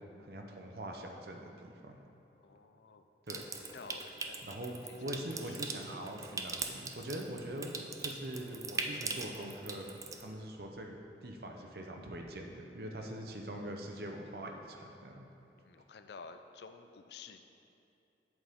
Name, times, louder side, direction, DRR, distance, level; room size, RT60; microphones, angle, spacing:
voice 1, 0.0-2.0 3.3-3.5 4.4-15.2, right 1 dB, 60° right, 2 dB, 0.8 m, -43 dB
voice 2, 2.4-3.0 3.7-4.5 4.9-5.2 5.5-5.6 13.0-13.2 15.6-17.4, left 5 dB, 70° left, 8 dB, 0.4 m, -51 dB
Water tap faucet / Sink (filling or washing) / Trickle dribble, 3.3-10.2, right 4 dB, 20° right, 0.3 m, -42 dB
8.0 x 7.6 x 3.6 m, 2.7 s
head